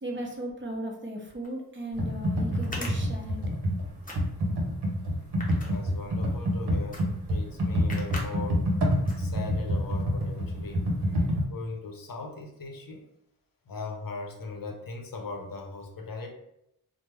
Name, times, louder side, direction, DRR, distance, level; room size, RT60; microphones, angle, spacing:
voice 1, 0.0-3.4, right 1 dB, 30° right, 0 dB, 0.6 m, -36 dB
sound 1, 1.4-1.5 2.5-3.7 4.0-4.6 5.2-6.3 6.9-7.0 7.3-7.4 7.9-8.3 8.6-8.8 9.1-9.6, left 1 dB, 20° left, 0.8 m, -40 dB
Computer keyboard, 1.9-11.4, equal, 85° right, 0.8 m, -27 dB
voice 2, 5.6-8.6 9.2-10.8 11.4-13.0 13.7-16.3, left 3 dB, 60° left, 2 dB, 0.7 m, -39 dB
3.1 x 2.0 x 3.3 m, 0.80 s
wide cardioid pair, 70°, 39 cm